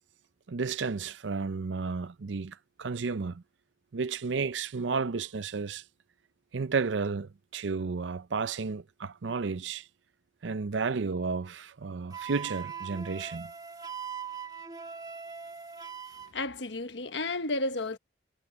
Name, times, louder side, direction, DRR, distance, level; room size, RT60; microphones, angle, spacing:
voice 1, 0.5-3.4 3.9-5.8 6.5-9.9 10.4-13.5, right 4 dB, 90° right, 0.6 m, -32 dB
Wind instrument woodwind instrument, 12.1-16.3, right 7 dB, 20° right, 2.1 m, -41 dB
voice 2, 16.3-18.0, left 2 dB, 80° left, 1.3 m, -32 dB
head